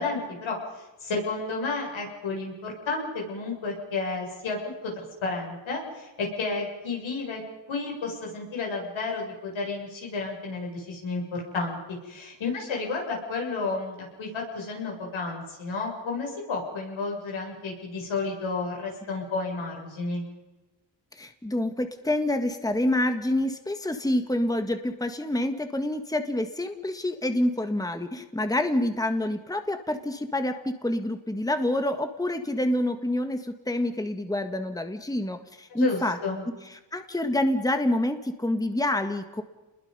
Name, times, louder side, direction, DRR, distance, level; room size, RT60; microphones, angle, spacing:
voice 1, 0.0-7.4 7.7-11.8 12.0-20.2 35.8-36.4, left 3 dB, 85° left, -1 dB, 7.6 m, -31 dB
voice 2, 21.1-36.2 36.9-39.4, left 1 dB, 10° left, 7 dB, 1.7 m, -27 dB
29.0 x 21.5 x 5.6 m, 1.1 s
cardioid pair, 85°, 46 cm